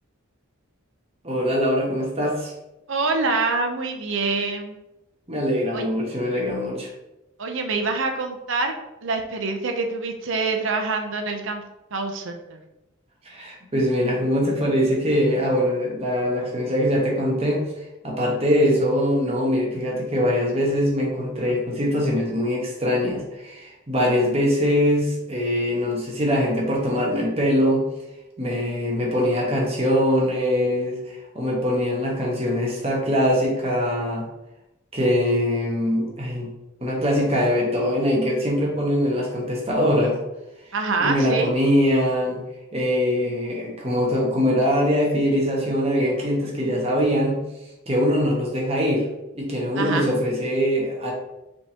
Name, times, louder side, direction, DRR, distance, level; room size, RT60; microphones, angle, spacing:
voice 1, 1.2-2.5 5.3-6.9 13.3-17.6 18.0-27.8 28.4-34.3 34.9-36.5 36.8-40.2 41.0-42.4 42.7-47.4 47.9-49.1 49.3-51.1, equal, 30° right, -2 dB, 1.1 m, -22 dB
voice 2, 2.9-4.8 5.7-5.8 7.4-8.7 9.0-11.6 11.9-12.6 40.7-41.5 46.4-46.5 49.8-50.1, right 3 dB, 60° right, 4 dB, 0.6 m, -25 dB
5.3 x 3.5 x 2.8 m, 0.94 s
head